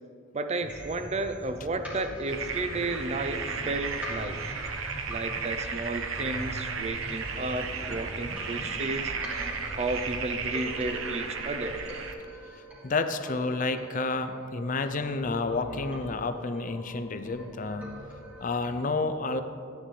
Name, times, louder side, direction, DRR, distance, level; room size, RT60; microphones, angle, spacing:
voice 1, 0.3-4.4 5.1-9.1 9.8-11.8, right 2 dB, 35° right, 9 dB, 0.5 m, -33 dB
sound 1, 0.6-10.5, equal, 10° left, 0.8 m, -44 dB
sound 2, 0.7-18.7, equal, 10° right, 2.6 m, -45 dB
sound 3, 2.3-12.1, right 5 dB, 85° right, 0.9 m, -34 dB
voice 2, 12.8-17.9 18.4-19.4, left 3 dB, 40° left, 9 dB, 0.5 m, -30 dB
14.5 x 9.9 x 3.3 m, 2.6 s
head